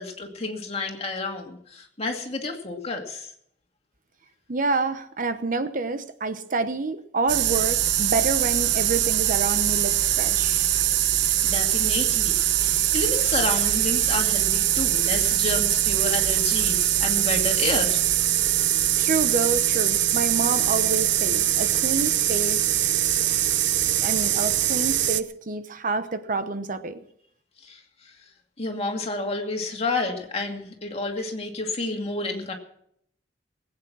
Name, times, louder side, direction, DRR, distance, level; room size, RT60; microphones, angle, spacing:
voice 1, 0.0-3.3 11.4-18.0 27.6-27.8 28.6-32.5, left 3 dB, 35° left, 2 dB, 2.4 m, -30 dB
voice 2, 4.5-10.7 19.0-22.6 24.0-27.0, right 3 dB, 45° right, 11 dB, 0.9 m, -28 dB
sound 1, 7.3-25.2, right 12 dB, 80° right, 0.7 m, -22 dB
20.0 x 8.9 x 6.1 m, 0.70 s
head